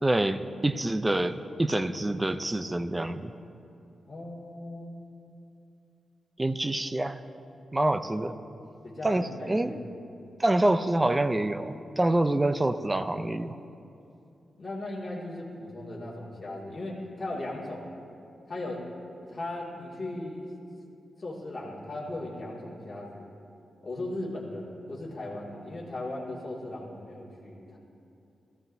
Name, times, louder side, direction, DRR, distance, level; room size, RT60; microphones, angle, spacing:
voice 1, 0.0-3.3 6.4-7.2 7.7-8.4 9.0-9.8 10.4-13.6, right 1 dB, 15° right, 10 dB, 0.4 m, -26 dB
voice 2, 4.1-4.9 8.8-9.8 14.6-17.9 18.5-18.8 19.2-20.5 21.2-23.2 23.8-27.8, left 1 dB, 30° left, -6 dB, 2.1 m, -37 dB
20.5 x 14.5 x 2.7 m, 2.7 s
wide cardioid pair, 140°, 0 cm